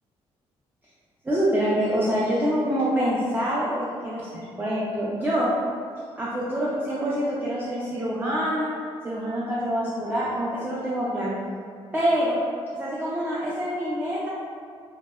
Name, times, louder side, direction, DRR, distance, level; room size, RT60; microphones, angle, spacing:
voice 1, 1.2-4.3 4.6-5.5 6.2-8.7 9.0-11.4 11.9-12.4 12.7-14.3, equal, 15° right, -8 dB, 0.4 m, -25 dB
2.7 x 2.1 x 2.2 m, 2.1 s
cardioid pair, 85°, 11 cm